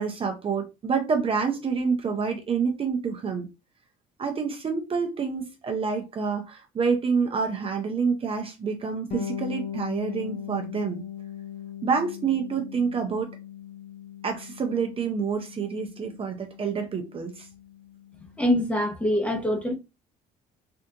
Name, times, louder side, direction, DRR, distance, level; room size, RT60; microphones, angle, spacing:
voice 1, 0.0-3.5 4.2-11.0 11.8-13.3 14.2-17.5, right 5 dB, 35° right, 0.6 m, -27 dB
Bass guitar, 9.1-18.7, left 9 dB, 40° left, 0.7 m, -40 dB
voice 2, 18.4-19.7, left 1 dB, 10° left, 0.8 m, -24 dB
3.4 x 2.4 x 2.8 m
cardioid pair, 110°, 17 cm